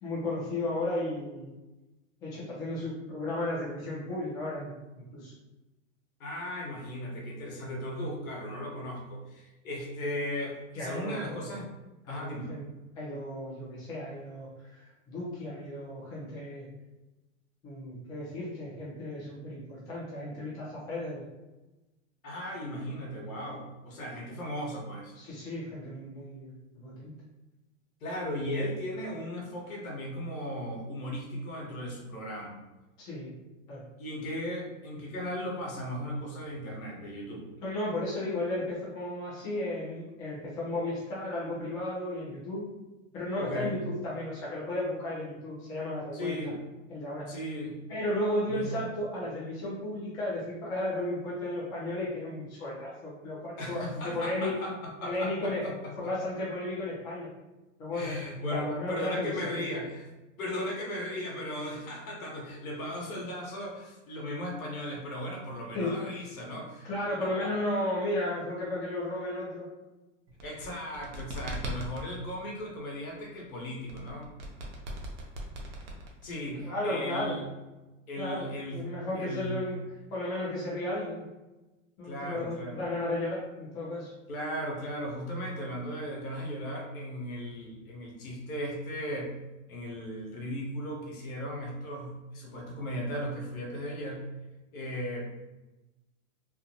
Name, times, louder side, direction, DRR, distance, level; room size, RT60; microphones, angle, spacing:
voice 1, 0.0-1.5 2.2-4.7 5.1-5.3 10.7-11.5 12.0-12.6 13.0-16.7 17.6-21.2 25.1-27.1 33.0-33.3 33.7-33.8 37.6-42.6 43.1-46.3 46.9-47.3 47.9-54.6 55.0-55.6 56.0-57.3 57.8-59.6 65.7-66.0 66.8-69.7 76.6-77.4 78.2-79.8 80.1-81.2 82.0-84.1, left 1 dB, 10° left, -7 dB, 0.3 m, -34 dB
voice 2, 6.2-11.7 12.1-12.5 22.2-25.1 28.0-32.6 34.0-37.5 43.4-43.7 46.1-46.6 47.3-47.8 48.5-48.7 53.6-54.7 55.0-55.7 56.0-56.1 57.9-60.1 60.4-66.9 67.2-67.5 70.4-74.3 76.2-77.4 78.1-78.9 79.1-79.6 82.0-82.8 84.3-89.3 89.7-94.3 94.7-95.2, equal, 85° left, -2 dB, 1.1 m, -36 dB
sound 1, 70.3-72.1 73.9-76.5, right 1 dB, 45° right, 0.6 m, -39 dB
2.6 x 2.2 x 2.7 m, 1.1 s
hypercardioid pair, 140°, 40 cm